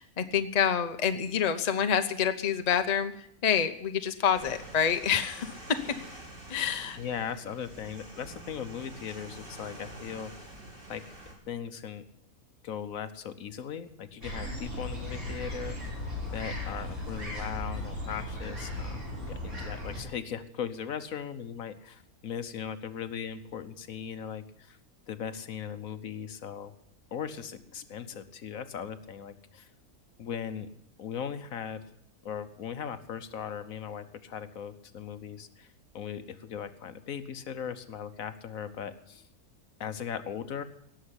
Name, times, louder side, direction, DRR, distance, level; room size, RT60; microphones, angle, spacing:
voice 1, 0.0-5.8 6.5-7.0, left 8 dB, 35° left, 8 dB, 0.8 m, -27 dB
sound 1, 4.3-11.3, right 1 dB, 35° right, 3.6 m, -47 dB
voice 2, 7.0-10.5 10.9-11.0 11.5-12.0 12.6-15.8 16.3-19.0 19.3-24.8 25.1-26.7 27.1-29.7 30.2-30.7 31.0-31.9 32.2-35.7 35.9-39.3 39.8-40.6, left 8 dB, 70° left, 11 dB, 1.3 m, -38 dB
sound 2, 14.2-20.0, left 1 dB, 50° right, 6.2 m, -36 dB
18.0 x 7.0 x 9.8 m, 0.72 s
omnidirectional pair, 1.5 m